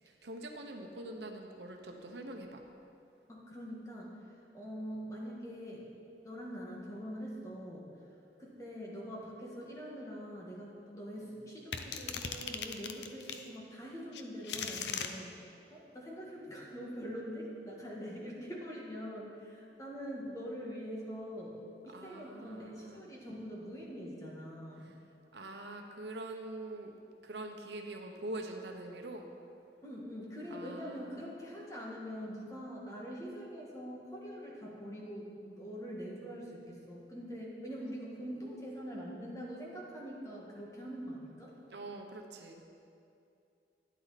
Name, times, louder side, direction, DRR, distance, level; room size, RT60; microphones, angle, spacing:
voice 1, 0.0-2.6 21.9-23.1 24.8-24.9 25.3-26.9 27.2-29.3 30.5-31.3 41.7-42.6, right 1 dB, 75° right, 3 dB, 1.0 m, -44 dB
voice 2, 3.3-4.2 4.5-5.8 6.2-7.9 8.4-15.3 15.7-21.6 21.9-24.9 29.8-41.5, equal, 20° left, -4 dB, 1.9 m, -44 dB
sound 1, 11.7-13.5 14.1-15.1, left 6 dB, 75° left, 0.7 m, -38 dB
12.5 x 10.5 x 4.2 m, 2.6 s
head